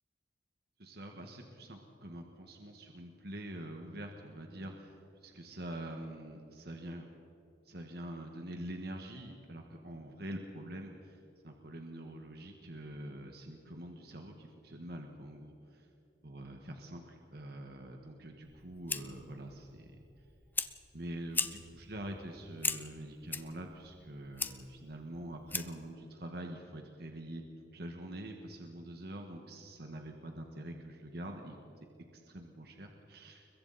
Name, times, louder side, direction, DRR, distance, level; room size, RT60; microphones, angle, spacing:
voice 1, 0.8-5.0 5.2-7.0 7.6-11.2 11.4-15.9 16.2-19.9 20.9-27.4 27.7-31.6 32.1-33.5, right 1 dB, 60° right, 3 dB, 1.8 m, -45 dB
Fire, 18.4-25.9, left 4 dB, 10° left, 0.6 m, -40 dB
29.5 x 22.5 x 4.3 m, 2.9 s
head